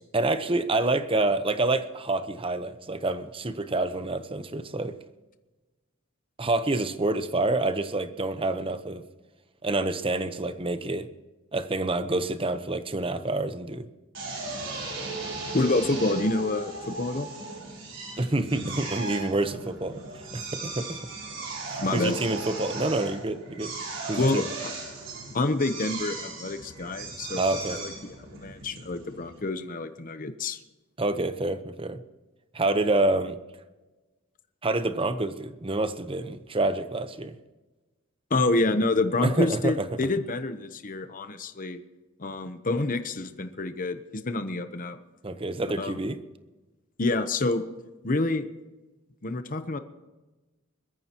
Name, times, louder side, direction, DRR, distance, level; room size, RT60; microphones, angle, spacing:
voice 1, 0.1-4.9 6.4-9.0 9.6-11.1 11.5-13.9 18.2-20.0 20.3-21.0 21.7-23.7 24.1-24.5 27.4-27.8 31.0-32.0 32.5-33.4 34.6-37.3 39.2-40.0 45.2-46.2, right 2 dB, 25° right, 11 dB, 0.9 m, -27 dB
Drill, 14.1-29.4, right 3 dB, 65° right, 5.2 m, -37 dB
voice 2, 15.5-17.3 21.8-22.2 24.2-24.7 25.3-27.4 27.7-27.9 28.4-30.6 38.3-41.8 42.2-45.0 45.8-45.9 47.0-47.6 48.0-48.5 49.2-49.8, left 2 dB, 40° left, 9 dB, 0.9 m, -27 dB
22.0 x 14.0 x 3.0 m, 1.2 s
head